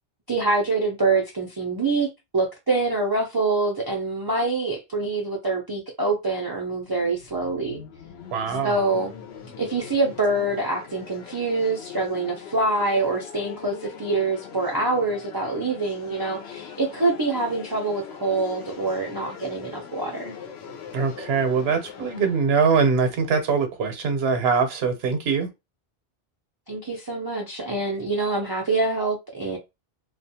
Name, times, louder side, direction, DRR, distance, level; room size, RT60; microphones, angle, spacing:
voice 1, 0.3-2.1 2.3-7.8 8.6-9.1 9.6-20.4 26.7-29.6, right 3 dB, 35° right, 0.3 m, -25 dB
sound 1, 6.3-24.1, left 7 dB, 80° left, 0.9 m, -42 dB
voice 2, 8.3-8.7 20.9-25.5, right 5 dB, 75° right, 1.0 m, -22 dB
2.4 x 2.1 x 2.7 m
omnidirectional pair, 1.1 m